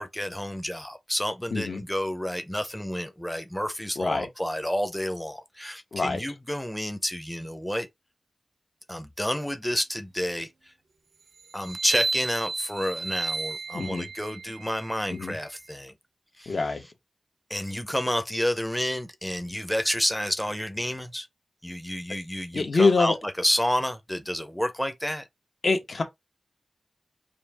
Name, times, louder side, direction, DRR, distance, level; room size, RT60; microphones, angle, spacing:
voice 1, 0.0-7.9 8.9-10.7 11.5-15.9 16.4-16.6 17.5-21.3 21.6-25.3, equal, 5° left, 0.6 m, -30 dB
voice 2, 4.0-4.3 5.9-6.2 13.7-14.1 15.2-15.3 16.5-16.9 22.5-23.1 25.6-26.0, left 3 dB, 65° left, 1.2 m, -24 dB
sound 1, 11.6-15.6, right 4 dB, 90° right, 0.6 m, -33 dB
5.1 x 2.7 x 3.4 m
wide cardioid pair, 95°, 0 cm